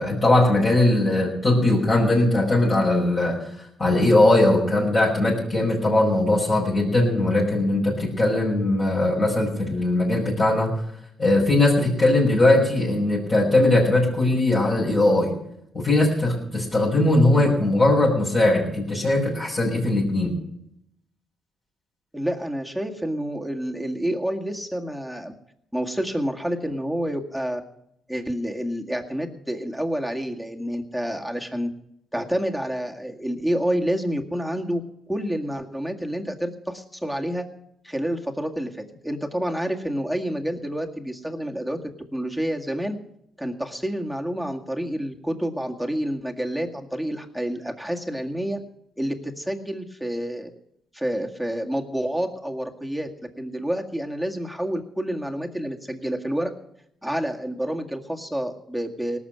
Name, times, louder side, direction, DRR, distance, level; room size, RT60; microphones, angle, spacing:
voice 1, 0.0-3.5 3.8-10.8 11.2-15.3 15.7-20.3, left 2 dB, 35° left, -5 dB, 5.7 m, -20 dB
voice 2, 22.1-25.3 25.7-27.6 28.1-31.7 32.1-34.8 35.1-37.5 37.8-41.8 42.1-43.0 43.4-48.6 49.0-50.5 50.9-53.1 53.4-56.5 57.0-59.2, equal, ahead, 3 dB, 2.0 m, -28 dB
18.0 x 7.1 x 9.1 m, 0.76 s
cardioid pair, 90°, 0 cm